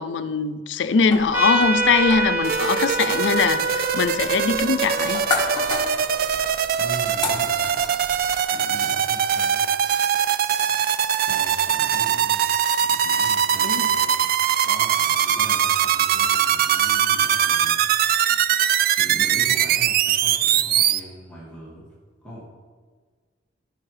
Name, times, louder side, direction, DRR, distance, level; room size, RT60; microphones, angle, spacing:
voice 1, 0.0-5.2 13.6-13.9, left 5 dB, 70° left, 11 dB, 0.4 m, -22 dB
sound 1, 1.1-8.4, left 3 dB, 25° left, 1.4 m, -33 dB
Trumpet, 1.3-6.4, right 2 dB, 10° right, 1.1 m, -27 dB
sound 2, 2.4-21.0, right 9 dB, 55° right, 0.3 m, -22 dB
voice 2, 6.8-7.9 8.5-9.7 11.2-12.4 12.8-14.3 14.6-17.9 19.0-21.9 22.2-22.5, equal, 5° left, -8 dB, 2.0 m, -40 dB
14.5 x 5.4 x 3.2 m, 1.5 s
head